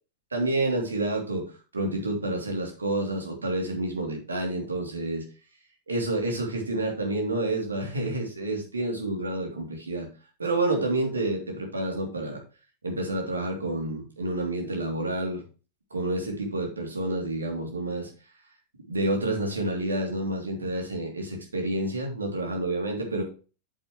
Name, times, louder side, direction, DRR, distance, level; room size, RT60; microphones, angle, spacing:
voice 1, 0.3-5.2 5.9-10.1 10.4-12.4 12.8-15.4 15.9-18.1 18.9-23.2, right 2 dB, 75° right, 1 dB, 3.0 m, -29 dB
8.9 x 7.3 x 3.2 m, 0.35 s
figure-of-eight pair, 90°, 0 cm